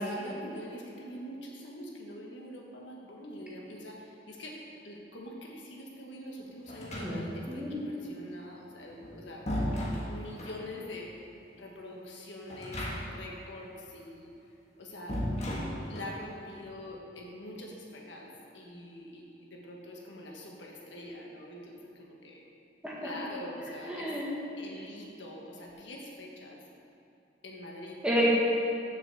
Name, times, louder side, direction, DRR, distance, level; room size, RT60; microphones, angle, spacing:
voice 1, 0.0-4.6 4.8-9.4 10.0-11.1 11.5-14.3 14.8-15.2 15.9-22.4 23.0-24.1 24.6-26.6 27.4-28.0, left 1 dB, 90° left, -1 dB, 1.5 m, -44 dB
sound 1, 6.7-7.5 8.8-10.6 12.5-13.3 13.6-13.7 15.1-16.2, equal, 40° left, 1.6 m, -35 dB
voice 2, 7.0-7.8 22.8-23.1 23.8-24.2 28.0-28.3, equal, 5° right, -6 dB, 1.6 m, -30 dB
6.9 x 6.7 x 7.2 m, 2.8 s
head